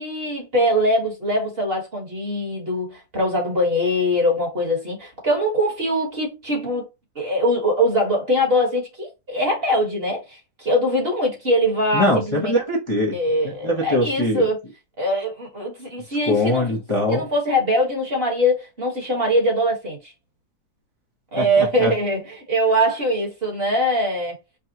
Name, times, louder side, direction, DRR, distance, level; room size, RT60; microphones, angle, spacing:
voice 1, 0.0-6.9 7.2-12.5 13.1-14.6 15.0-16.7 17.1-20.1 21.3-24.4, equal, 35° right, 1.6 m, -22 dB
voice 2, 11.9-13.2 13.4-14.4 16.3-17.3 21.4-21.9, left 1 dB, 25° left, 0.8 m, -22 dB
5.2 x 2.3 x 2.8 m
omnidirectional pair, 1.8 m